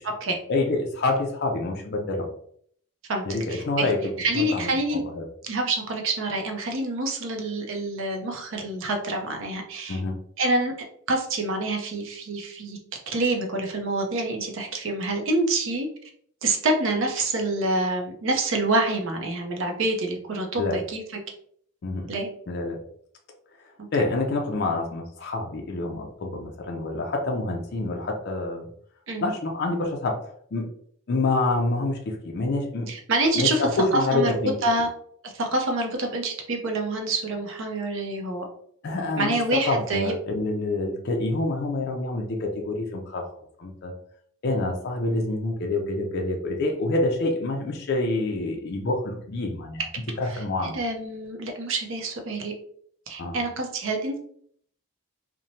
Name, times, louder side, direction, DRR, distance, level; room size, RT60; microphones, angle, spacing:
voice 1, 0.5-2.3 3.2-4.7 5.2-5.3 9.9-10.2 20.6-20.8 21.8-22.1 22.5-22.8 23.6-28.7 29.2-30.2 30.5-30.7 31.1-32.9 33.4-34.5 38.8-43.3 43.6-43.9 44.4-49.9 50.2-50.8 53.2-53.4, left 2 dB, 50° left, 1 dB, 0.4 m, -27 dB
voice 2, 3.5-3.9 4.2-5.0 5.4-10.0 10.4-10.7 11.1-12.8 13.1-15.9 16.4-21.0 22.1-22.3 23.8-23.9 29.1-29.3 32.9-34.9 35.2-38.4 39.2-40.1 50.2-50.4 50.7-52.5 53.1-54.2, right 2 dB, 60° right, 3 dB, 0.6 m, -27 dB
2.9 x 2.1 x 2.6 m, 0.63 s
head